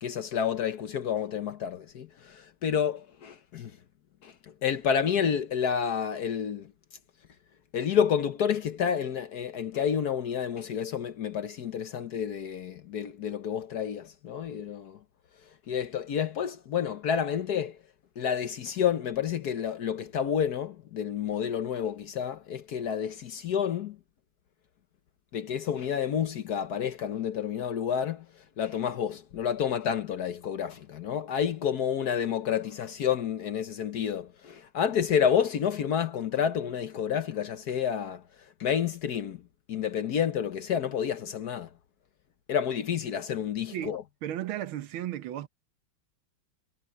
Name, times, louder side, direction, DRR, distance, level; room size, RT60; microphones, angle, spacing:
voice 1, 0.0-3.7 4.2-4.3 4.6-6.7 7.7-15.0 15.7-17.8 18.2-24.0 25.3-28.2 28.6-38.2 38.6-39.4 39.7-41.7 42.5-44.0, left 8 dB, 60° left, 1.3 m, -29 dB
voice 2, 43.7-45.5, right 12 dB, 80° right, 1.7 m, -35 dB
omnidirectional pair, 2.2 m